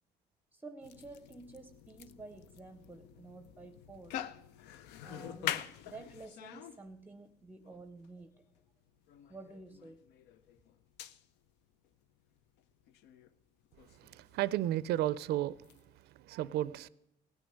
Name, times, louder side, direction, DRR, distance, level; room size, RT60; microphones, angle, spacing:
voice 1, 0.5-4.3 5.0-8.5 9.3-10.0, right 3 dB, 10° right, 10 dB, 0.6 m, -51 dB
sound 1, 0.8-16.0, left 10 dB, 90° left, 0.5 m, -45 dB
voice 2, 13.9-15.6 16.0-16.9, right 13 dB, 75° right, 18 dB, 0.4 m, -33 dB
17.0 x 6.3 x 9.6 m, 0.81 s
cardioid pair, 110°, 17 cm